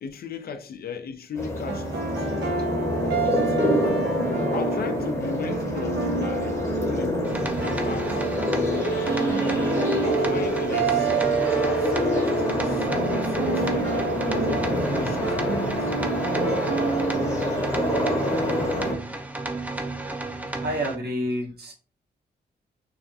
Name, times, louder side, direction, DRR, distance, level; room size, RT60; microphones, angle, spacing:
voice 1, 0.0-2.5 3.2-3.9 4.3-7.2 7.6-9.3 10.0-11.1 11.6-15.9 19.1-19.2, left 6 dB, 55° left, 0.4 m, -37 dB
sound 1, 1.3-18.9, left 1 dB, 15° left, 0.8 m, -27 dB
sound 2, 1.7-18.6, right 4 dB, 80° right, 0.6 m, -28 dB
sound 3, 7.2-20.9, right 2 dB, 10° right, 0.4 m, -33 dB
voice 2, 17.5-17.8 20.6-21.7, equal, 60° right, 1.0 m, -30 dB
2.4 x 2.1 x 2.6 m
cardioid pair, 65°, 18 cm